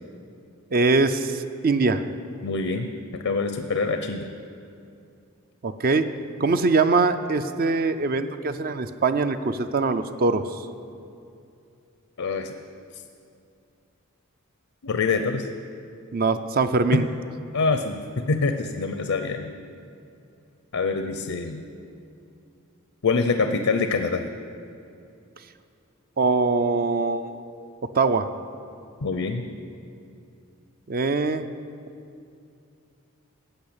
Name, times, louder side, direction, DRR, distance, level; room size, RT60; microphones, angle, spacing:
voice 1, 0.7-2.0 5.6-6.1 6.4-10.6 16.1-17.1 26.2-27.4 27.9-28.3 30.9-31.5, right 3 dB, 45° right, 10 dB, 0.5 m, -22 dB
voice 2, 2.4-2.9 3.1-4.3 12.2-12.5 14.8-15.5 16.9-17.0 17.5-19.5 20.7-21.6 23.0-24.2 29.0-29.5, left 4 dB, 75° left, 7 dB, 0.6 m, -25 dB
14.5 x 5.5 x 8.7 m, 2.5 s
head